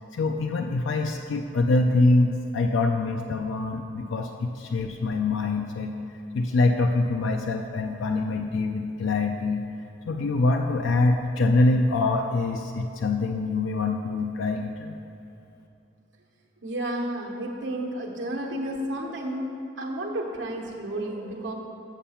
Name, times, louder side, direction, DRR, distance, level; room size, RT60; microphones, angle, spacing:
voice 1, 0.1-5.9 6.3-9.6 10.1-15.0, left 2 dB, 80° left, 4 dB, 0.4 m, -24 dB
voice 2, 16.6-21.5, right 1 dB, 75° right, 0 dB, 1.2 m, -31 dB
7.2 x 7.1 x 5.6 m, 2.8 s
head